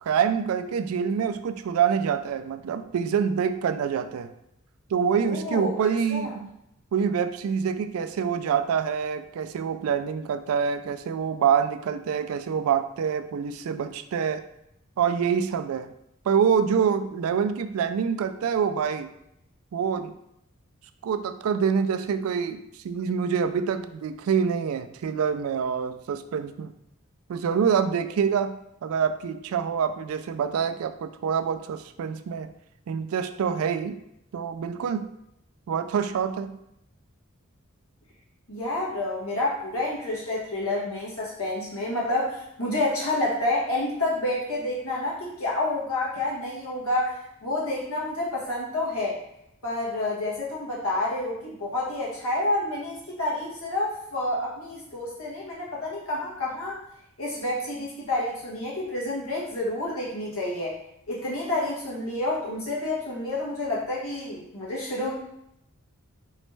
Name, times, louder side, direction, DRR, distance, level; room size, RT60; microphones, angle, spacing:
voice 1, 0.0-4.3 4.9-6.5 6.9-14.4 15.0-15.9 16.3-19.1 19.7-20.1 21.0-26.7 27.3-32.5 32.9-34.0 34.3-35.1 35.7-36.6, right 7 dB, 80° right, 11 dB, 0.3 m, -26 dB
voice 2, 5.2-6.3 38.5-49.2 49.6-56.8 57.2-60.8 61.1-65.1, left 2 dB, 80° left, -5 dB, 1.4 m, -29 dB
4.1 x 3.2 x 3.2 m, 0.80 s
head